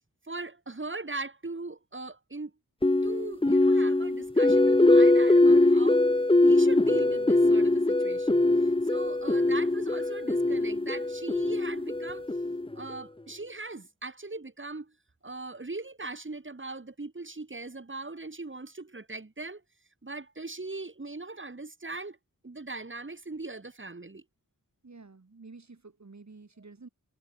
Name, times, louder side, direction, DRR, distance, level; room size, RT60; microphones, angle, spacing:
voice 1, 0.3-2.5 3.0-6.0 6.4-8.4 8.8-12.3 12.8-14.9 15.2-19.6 20.0-22.2 22.4-24.2, right 3 dB, 35° right, 3.2 m, -40 dB
sound 1, 2.8-12.9, left 2 dB, 15° left, 1.1 m, -22 dB
voice 2, 24.8-26.9, right 3 dB, 50° right, 6.4 m, -50 dB
wide cardioid pair, 90°, 36 cm